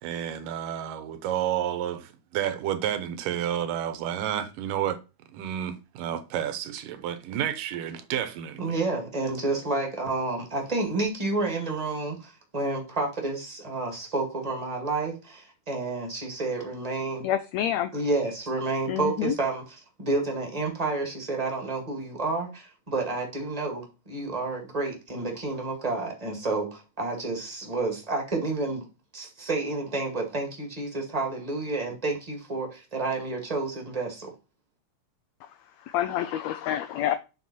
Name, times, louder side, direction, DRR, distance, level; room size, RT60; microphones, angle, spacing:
voice 1, 0.0-5.0 5.3-8.8, right 10 dB, 90° right, 2.5 m, -30 dB
voice 2, 8.6-17.3 17.9-28.9 29.1-34.3, right 3 dB, 15° right, 1.4 m, -30 dB
voice 3, 17.2-17.9 18.9-19.4 35.9-37.2, left 11 dB, 85° left, 1.5 m, -27 dB
7.9 x 4.5 x 4.2 m
omnidirectional pair, 3.7 m